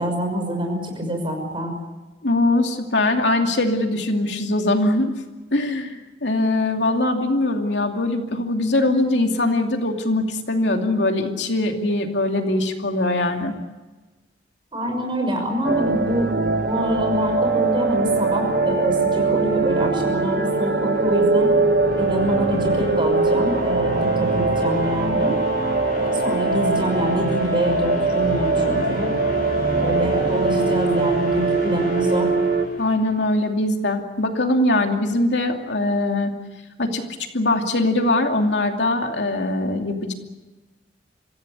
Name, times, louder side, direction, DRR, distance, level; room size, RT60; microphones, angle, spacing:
voice 1, 0.0-1.7 14.7-21.5 21.9-25.4 25.9-29.1 29.7-32.3, equal, 25° right, 3 dB, 6.0 m, -25 dB
voice 2, 2.2-5.1 5.5-13.6 32.8-36.4 36.8-37.0 37.3-40.1, left 2 dB, 75° left, 4 dB, 2.6 m, -21 dB
sound 1, 15.6-32.7, right 3 dB, 55° right, 1.6 m, -22 dB
sound 2, 20.3-33.4, left 1 dB, 50° left, 3.8 m, -33 dB
25.5 x 15.5 x 9.9 m, 1.2 s
head